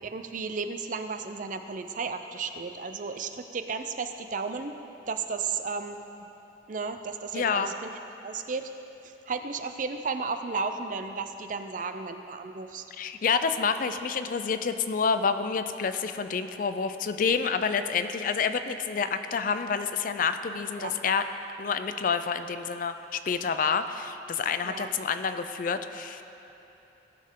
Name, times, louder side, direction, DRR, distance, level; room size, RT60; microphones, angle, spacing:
voice 1, 0.0-4.8 5.1-6.0 6.7-7.9 8.2-8.7 9.0-12.8 20.8-20.9 24.6-24.9, right 4 dB, 45° right, 8 dB, 0.5 m, -34 dB
voice 2, 7.3-7.7 13.0-21.2 21.6-26.2, left 5 dB, 50° left, 10 dB, 0.4 m, -28 dB
17.0 x 6.5 x 3.7 m, 3.0 s
head